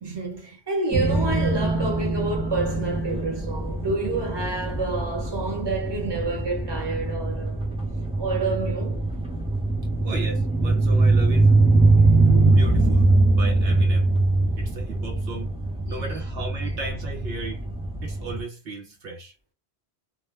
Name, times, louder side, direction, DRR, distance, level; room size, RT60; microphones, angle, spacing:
voice 1, 0.0-7.6 8.2-9.1, right 3 dB, 25° right, 0.9 m, -28 dB
sound 1, 0.9-18.4, right 2 dB, 10° right, 0.5 m, -22 dB
voice 2, 10.0-11.5 12.5-14.1 14.6-15.6 15.9-17.6 18.0-19.3, right 2 dB, 70° right, 0.9 m, -35 dB
2.3 x 2.1 x 3.1 m
omnidirectional pair, 1.1 m